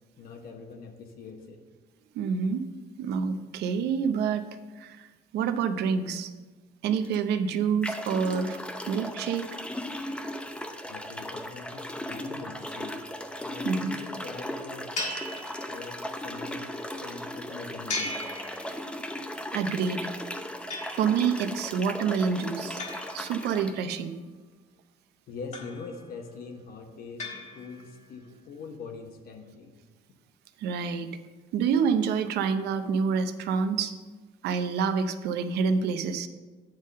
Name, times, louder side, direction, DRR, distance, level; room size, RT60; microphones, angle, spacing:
voice 1, 0.2-1.6 10.8-13.0 13.4-14.9 15.7-16.7 17.0-18.2 25.3-29.7, left 4 dB, 65° left, 5 dB, 1.1 m, -43 dB
voice 2, 2.1-2.6 3.0-4.5 4.8-5.1 5.3-6.3 6.8-8.6 8.9-9.5 13.6-13.9 19.5-20.1 20.9-22.8 23.1-24.2 30.6-31.1 31.5-33.9 34.4-36.3, right 6 dB, 75° right, 9 dB, 0.6 m, -27 dB
sound 1, 7.0-7.2 7.8-23.7, left 1 dB, 5° left, 0.6 m, -37 dB
sound 2, 15.0-16.2 17.9-19.2 20.7-21.4 22.8-23.9 25.5-26.2 27.2-28.1, left 2 dB, 45° left, 1.5 m, -38 dB
9.0 x 3.7 x 6.4 m, 1.3 s
cardioid pair, 110°, 17 cm